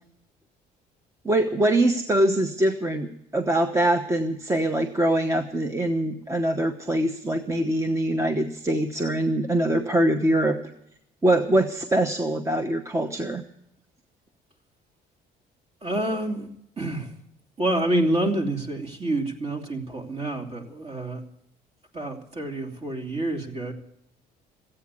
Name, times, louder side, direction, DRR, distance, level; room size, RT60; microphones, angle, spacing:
voice 1, 1.2-10.6 11.2-13.4, right 1 dB, 15° right, 7 dB, 1.0 m, -23 dB
voice 2, 15.8-16.5 16.8-17.1 17.6-21.2 21.9-23.7, right 1 dB, 35° right, 4 dB, 2.9 m, -27 dB
15.5 x 8.8 x 9.7 m, 0.73 s
cardioid pair, 110°, 17 cm